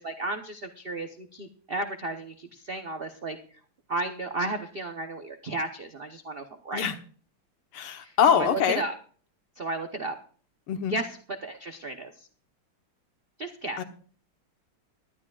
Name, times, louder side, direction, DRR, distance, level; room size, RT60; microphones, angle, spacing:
voice 1, 0.0-3.4 3.9-6.9 8.0-8.9 9.6-10.1 10.9-12.3 13.4-13.8, right 2 dB, 55° right, 6 dB, 0.6 m, -33 dB
voice 2, 7.7-8.8 10.7-11.0 13.8-13.9, left 8 dB, 85° left, 9 dB, 2.0 m, -24 dB
19.0 x 12.5 x 2.4 m, 0.44 s
omnidirectional pair, 2.4 m